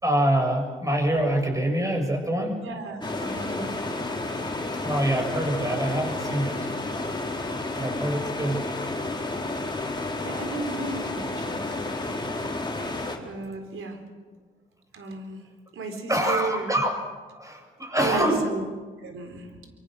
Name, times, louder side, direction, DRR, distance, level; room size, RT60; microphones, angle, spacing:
voice 1, 0.0-2.6 4.8-6.7 7.7-8.6 16.1-16.9 17.3-18.4, right 1 dB, 15° right, 3 dB, 6.8 m, -25 dB
voice 2, 2.6-3.8 10.2-11.8 13.2-14.0 14.9-16.7 18.0-18.6 19.0-19.5, right 3 dB, 75° right, 6 dB, 4.2 m, -34 dB
sound 1, 3.0-13.2, left 2 dB, 20° left, 3.9 m, -31 dB
24.5 x 23.0 x 6.5 m, 1.4 s
cardioid pair, 65°, 21 cm